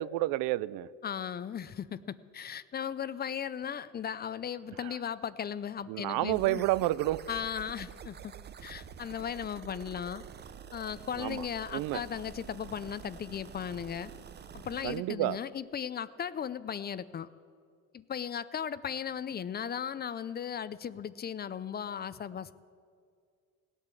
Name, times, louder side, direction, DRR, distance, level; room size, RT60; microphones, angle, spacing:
voice 1, 0.0-0.9 5.9-7.2 11.2-11.4 11.7-12.0 14.8-15.4, right 17 dB, 85° right, 0.5 m, -30 dB
voice 2, 1.0-6.7 7.3-8.3 8.6-10.2 10.7-14.1 14.5-17.3 17.9-22.5, left 8 dB, 30° left, 0.5 m, -37 dB
sound 1, 6.3-15.0, right 8 dB, 30° right, 0.6 m, -48 dB
17.5 x 9.0 x 7.6 m
cardioid pair, 120°, 33 cm